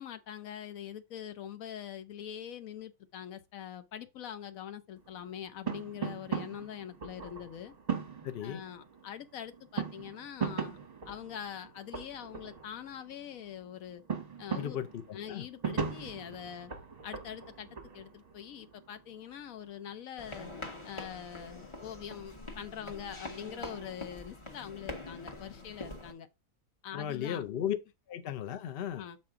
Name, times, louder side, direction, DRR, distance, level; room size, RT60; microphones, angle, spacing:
voice 1, 0.0-7.7 8.4-10.8 11.1-14.0 14.4-14.8 15.1-16.7 17.0-17.7 17.9-20.5 20.8-26.3 26.8-27.4 28.9-29.2, left 9 dB, 70° left, 1.0 m, -43 dB
sound 1, 5.0-20.0, right 6 dB, 30° right, 0.9 m, -40 dB
voice 2, 8.2-8.6 14.6-15.5 26.9-27.8 28.1-29.1, left 10 dB, 55° left, 0.7 m, -36 dB
sound 2, 20.2-26.1, left 2 dB, 25° left, 0.9 m, -44 dB
7.4 x 4.3 x 3.7 m
omnidirectional pair, 1.6 m